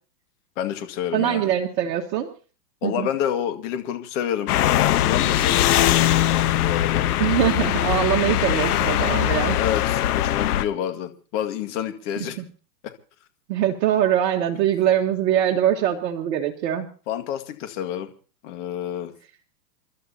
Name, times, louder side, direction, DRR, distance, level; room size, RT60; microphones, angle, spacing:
voice 1, 0.6-1.5 2.8-5.8 6.6-7.1 9.5-12.4 17.1-18.1 18.4-19.1, left 10 dB, 45° left, 7 dB, 2.1 m, -28 dB
voice 2, 1.1-2.3 2.8-3.1 7.2-9.6 13.5-16.9, right 11 dB, 50° right, 0 dB, 1.7 m, -22 dB
sound 1, 4.5-10.6, left 13 dB, 65° left, 1.1 m, -21 dB
29.0 x 12.5 x 2.9 m, 0.38 s
hypercardioid pair, 135°, 50 cm